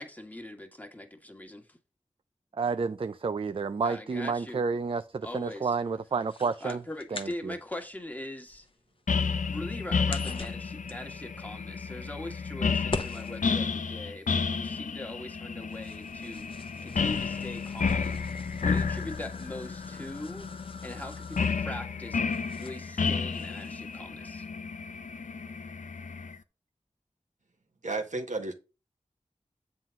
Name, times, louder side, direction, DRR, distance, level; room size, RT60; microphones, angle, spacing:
voice 1, 0.0-1.8 3.8-4.6 5.2-5.8 6.6-8.7 9.5-16.5 16.8-22.2 22.6-24.5, left 1 dB, 10° left, 1.6 m, -41 dB
voice 2, 2.5-6.8 7.1-7.5, right 5 dB, 45° right, 0.4 m, -30 dB
sound 1, 4.1-24.0, left 3 dB, 45° left, 0.7 m, -46 dB
sound 2, 9.1-26.3, left 5 dB, 85° left, 0.6 m, -32 dB
voice 3, 27.8-28.5, right 3 dB, 70° right, 1.4 m, -32 dB
7.5 x 3.8 x 5.7 m
wide cardioid pair, 45°, 13 cm